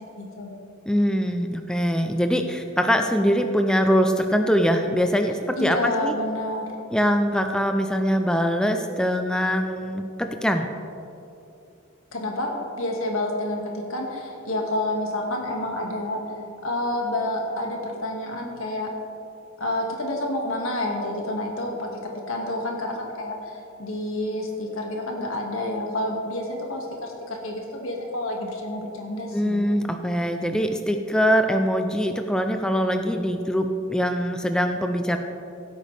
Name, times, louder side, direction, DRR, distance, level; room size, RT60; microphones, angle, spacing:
voice 1, 0.2-0.5 5.6-6.7 12.1-12.5 12.8-18.9 19.6-29.8, left 1 dB, 75° left, 0 dB, 1.9 m, -29 dB
voice 2, 0.9-6.1 6.9-10.7 29.3-35.2, equal, 5° left, 5 dB, 0.4 m, -23 dB
16.0 x 8.4 x 3.4 m, 2.7 s
head